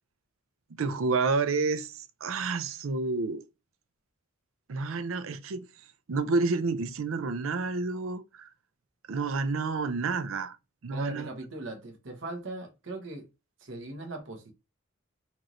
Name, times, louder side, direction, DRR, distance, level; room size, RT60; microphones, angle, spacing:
voice 1, 0.8-3.4 4.7-5.7 6.1-8.5 9.1-10.6 10.8-11.3, right 4 dB, 85° right, 0.5 m, -29 dB
voice 2, 10.9-13.3 13.6-14.5, right 2 dB, 65° right, 1.0 m, -39 dB
4.4 x 2.5 x 3.0 m
head